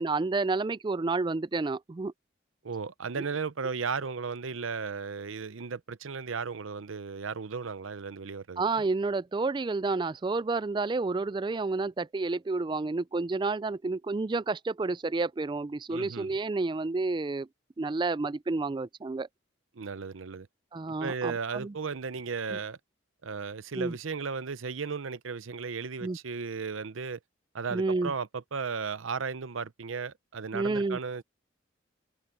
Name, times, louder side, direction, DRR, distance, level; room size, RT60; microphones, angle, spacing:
voice 1, 0.0-2.1 8.6-17.5 17.8-19.3 20.7-21.7 23.8-23.9 26.0-26.2 27.7-28.1 30.5-31.0, right 3 dB, 25° right, 0.3 m, -30 dB
voice 2, 2.6-8.8 15.9-16.3 19.7-20.5 21.0-22.8 23.2-27.2 27.5-31.2, right 5 dB, 90° right, 0.7 m, -35 dB
head